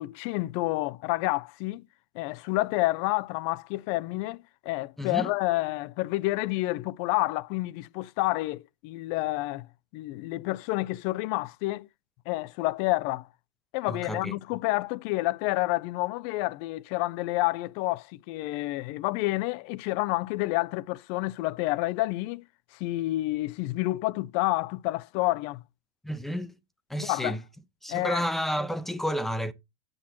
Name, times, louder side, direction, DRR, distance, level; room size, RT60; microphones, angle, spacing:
voice 1, 0.0-1.9 2.1-4.4 4.6-9.7 9.9-11.9 12.3-13.3 13.7-22.4 22.7-25.6 27.0-27.4 27.9-28.2, left 20 dB, 55° left, 0.5 m, -29 dB
voice 2, 5.0-5.3 13.9-14.3 26.0-26.6 26.9-27.4 27.8-29.5, equal, ahead, 1.0 m, -31 dB
17.5 x 6.5 x 3.0 m
supercardioid pair, 135°, 13 cm